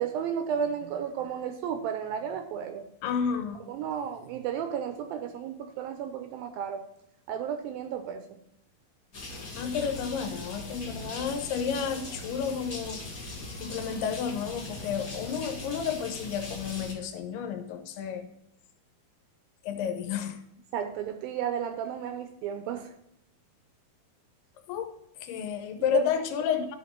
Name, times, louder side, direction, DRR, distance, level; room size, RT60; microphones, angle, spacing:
voice 1, 0.0-2.9 3.7-6.8 7.3-8.4 20.7-22.9 25.9-26.0, right 8 dB, 80° right, 7 dB, 2.2 m, -33 dB
voice 2, 3.0-3.7 9.6-13.3 13.6-18.3 19.6-20.4 24.7-24.9 25.2-26.8, left 7 dB, 85° left, 7 dB, 2.8 m, -31 dB
sound 1, 9.1-16.9, left 2 dB, 70° left, 0.8 m, -40 dB
12.5 x 4.4 x 4.4 m, 0.79 s
omnidirectional pair, 4.7 m